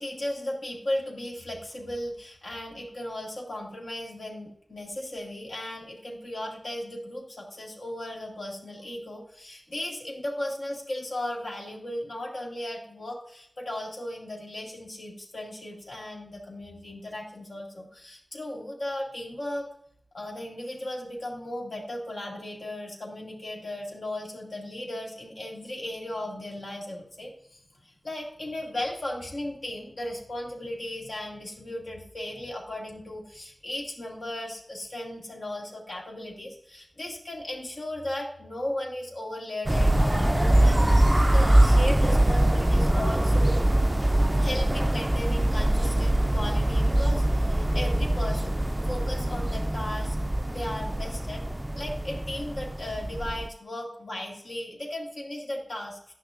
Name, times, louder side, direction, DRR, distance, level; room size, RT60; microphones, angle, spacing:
voice 1, 0.0-19.7 20.1-43.6 44.4-50.2 50.5-51.4 51.7-56.1, left 1 dB, 80° left, -2 dB, 2.0 m, -36 dB
sound 1, 39.7-53.5, right 1 dB, 20° right, 0.3 m, -23 dB
11.0 x 5.8 x 2.5 m, 0.68 s
wide cardioid pair, 75°, 0 cm